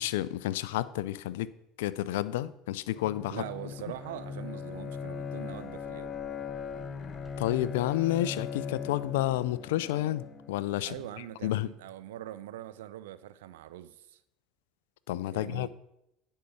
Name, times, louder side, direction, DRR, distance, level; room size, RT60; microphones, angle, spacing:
voice 1, 0.0-3.4 7.4-10.9 11.4-11.7 15.1-15.7, left 14 dB, 80° left, 0.4 m, -30 dB
Bowed string instrument, 2.9-10.7, left 6 dB, 40° left, 0.9 m, -39 dB
sound 1, 3.3-8.8, right 2 dB, 15° right, 1.2 m, -57 dB
voice 2, 3.3-6.1 10.8-14.2 15.3-15.7, right 13 dB, 80° right, 0.5 m, -42 dB
10.0 x 5.5 x 6.4 m
hypercardioid pair, 75°, 0 cm